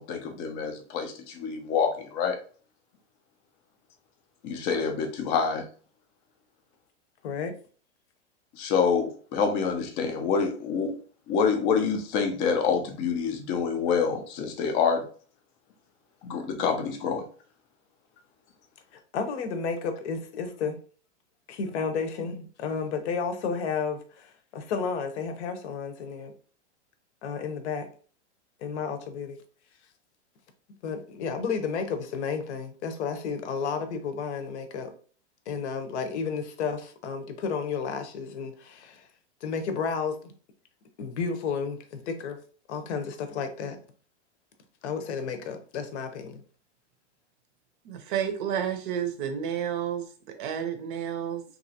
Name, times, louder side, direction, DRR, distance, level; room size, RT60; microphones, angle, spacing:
voice 1, 0.0-2.4 4.4-5.6 8.5-11.0 11.3-15.0 16.2-17.2, left 6 dB, 25° left, 5 dB, 0.3 m, -27 dB
voice 2, 7.2-7.5 18.9-20.8 21.5-26.3 27.2-27.9 28.6-29.4 30.8-34.9 35.5-39.0 39.4-40.3 41.0-42.4 42.7-43.8 44.8-46.4, left 5 dB, 70° left, 7 dB, 0.7 m, -32 dB
voice 3, 47.8-51.4, right 9 dB, 45° right, 7 dB, 0.6 m, -31 dB
2.9 x 2.5 x 2.7 m, 0.41 s
supercardioid pair, 140°, 36 cm